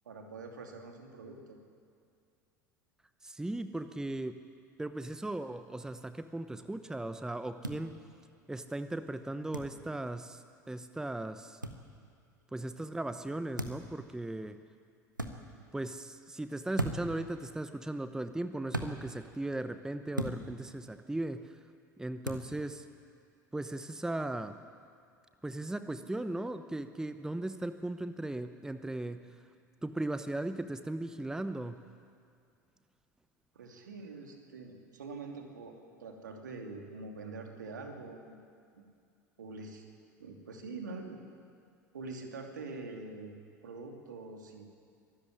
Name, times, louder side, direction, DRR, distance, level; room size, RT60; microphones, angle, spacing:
voice 1, 0.0-1.6 33.5-38.4 38.8-38.9 39.4-39.8 40.2-41.2 41.9-43.3 43.6-44.7, right 3 dB, 70° right, 3 dB, 2.7 m, -45 dB
voice 2, 3.2-4.4 4.8-8.0 8.5-11.6 12.5-14.6 15.7-21.7 22.0-22.9 23.5-24.6 25.4-29.5 29.8-31.9, right 2 dB, 5° right, 11 dB, 0.8 m, -37 dB
sound 1, 7.6-7.8 9.5-9.7 11.6-11.8 13.6-13.9 15.1-15.3 16.7-17.2 18.7-18.9 20.1-20.4 22.2-22.5, right 1 dB, 90° right, 1.4 m, -35 dB
24.0 x 13.5 x 9.9 m, 2.3 s
figure-of-eight pair, 75°, 10 cm